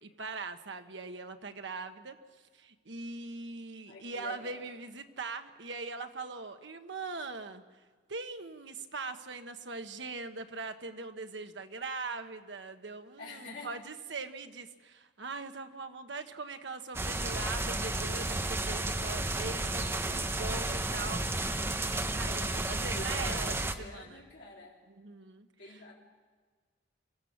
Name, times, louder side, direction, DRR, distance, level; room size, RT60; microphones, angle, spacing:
voice 1, 0.0-2.2 2.5-7.6 8.1-21.3 22.1-24.2 24.9-25.8, right 3 dB, 80° right, 7 dB, 1.2 m, -41 dB
voice 2, 3.9-4.6 13.2-13.7 22.9-24.7 25.6-26.0, left 2 dB, 75° left, -6 dB, 3.7 m, -47 dB
sound 1, 16.9-23.7, right 2 dB, 15° right, 0.7 m, -32 dB
26.0 x 15.5 x 7.3 m, 1.4 s
head